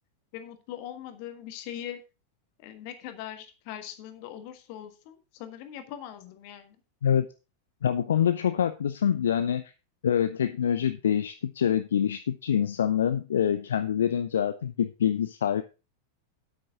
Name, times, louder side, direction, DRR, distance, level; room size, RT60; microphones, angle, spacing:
voice 1, 0.3-2.0 2.6-6.8, left 11 dB, 45° left, 9 dB, 1.5 m, -41 dB
voice 2, 7.8-9.6 10.0-15.6, left 9 dB, 65° left, 11 dB, 0.6 m, -25 dB
9.3 x 8.7 x 3.6 m, 0.30 s
figure-of-eight pair, 90°, 0 cm